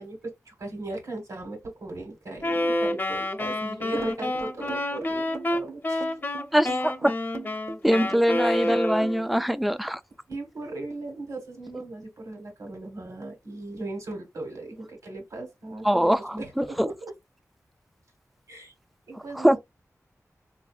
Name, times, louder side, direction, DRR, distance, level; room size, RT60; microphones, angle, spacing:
voice 1, 0.0-6.1 8.4-8.8 10.3-16.9 18.5-18.7 19.1-19.6, right 2 dB, 75° right, 1.3 m, -38 dB
Wind instrument woodwind instrument, 2.4-9.4, left 1 dB, 35° left, 0.6 m, -28 dB
sound 1, 4.0-9.2, right 5 dB, 50° right, 0.6 m, -40 dB
voice 2, 6.5-7.1 7.8-10.0 15.8-16.9 19.1-19.6, equal, ahead, 0.3 m, -23 dB
4.1 x 2.6 x 2.4 m
wide cardioid pair, 80°, 6 cm